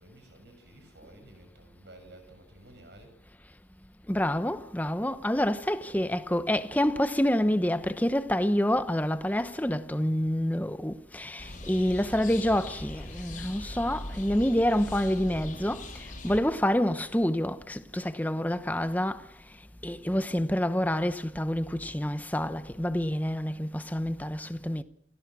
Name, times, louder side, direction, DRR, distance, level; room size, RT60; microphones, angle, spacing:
voice 1, 0.0-3.1, right 1 dB, 60° right, 6.4 m, -53 dB
voice 2, 4.1-15.9 16.2-19.2 19.8-24.8, left 1 dB, 10° left, 0.8 m, -27 dB
sound 1, 11.4-16.4, left 1 dB, 40° left, 4.2 m, -41 dB
28.0 x 17.5 x 6.3 m
head